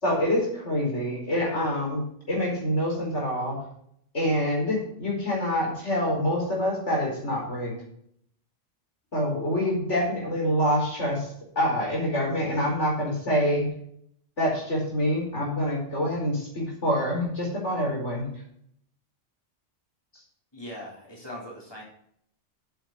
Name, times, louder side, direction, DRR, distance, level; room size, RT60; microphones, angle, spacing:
voice 1, 0.0-3.6 4.1-7.8 9.1-13.7 14.4-18.3, equal, 70° left, -2 dB, 4.8 m, -26 dB
voice 2, 20.5-21.8, equal, 20° left, -3 dB, 3.7 m, -40 dB
9.1 x 8.0 x 6.3 m, 0.67 s
omnidirectional pair, 1.3 m